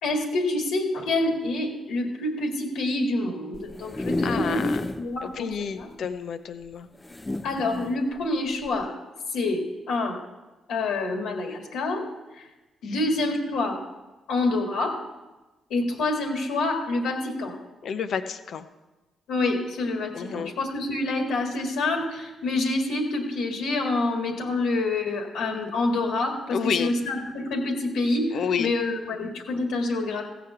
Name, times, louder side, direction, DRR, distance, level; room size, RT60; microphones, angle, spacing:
voice 1, 0.0-5.9 7.4-8.9 9.3-10.2 10.7-12.1 12.4-12.5 12.8-13.8 14.3-15.0 15.7-17.6 19.3-30.3, left 2 dB, 85° left, 2 dB, 1.9 m, -27 dB
sound 1, 3.5-5.1 5.5-5.6 5.8-5.9 7.0-8.0 8.6-8.8, left 1 dB, 20° left, 0.5 m, -30 dB
voice 2, 4.2-4.8 5.2-6.9 17.8-18.6 20.1-20.5 26.5-26.9 28.3-28.7, left 7 dB, 65° left, 10 dB, 0.8 m, -29 dB
15.0 x 5.1 x 8.0 m, 1.1 s
supercardioid pair, 55°, 0 cm